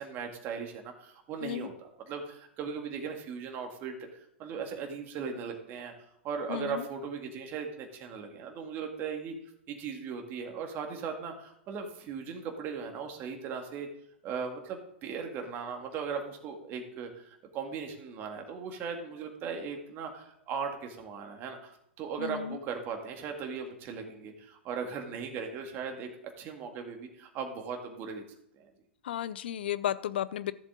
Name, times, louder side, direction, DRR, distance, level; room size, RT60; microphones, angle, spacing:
voice 1, 0.0-5.9 6.2-9.3 9.7-13.9 14.2-26.1 26.4-28.2 28.5-28.7, right 6 dB, 35° right, 3 dB, 2.0 m, -38 dB
voice 2, 6.5-6.9 22.2-22.6 29.0-30.5, left 11 dB, 65° left, 17 dB, 0.6 m, -33 dB
14.0 x 7.2 x 3.8 m, 0.73 s
figure-of-eight pair, 105°, 6 cm